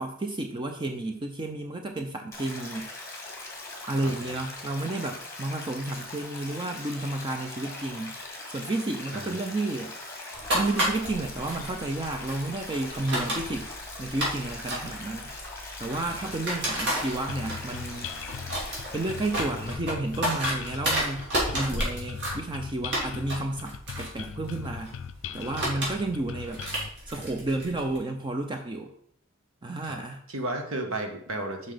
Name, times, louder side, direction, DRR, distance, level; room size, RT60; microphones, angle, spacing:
voice 1, 0.0-2.9 3.9-8.1 8.5-10.0 10.5-13.7 14.0-15.3 15.8-18.1 18.9-21.3 21.5-24.9 25.3-26.6 27.1-28.9 29.6-30.2, right 2 dB, 25° right, 4 dB, 0.5 m, -31 dB
Stream, 2.3-19.8, left 2 dB, 15° left, 1.7 m, -41 dB
voice 2, 4.0-4.3 9.1-9.3 16.1-16.3 16.6-16.8 25.7-25.8 29.8-30.0 30.3-31.7, right 2 dB, 75° right, 3 dB, 1.3 m, -34 dB
sound 1, 10.3-28.0, right 1 dB, 55° right, 2.8 m, -33 dB
sound 2, 17.3-26.9, left 7 dB, 65° left, 0.4 m, -39 dB
5.9 x 5.4 x 5.0 m, 0.66 s
head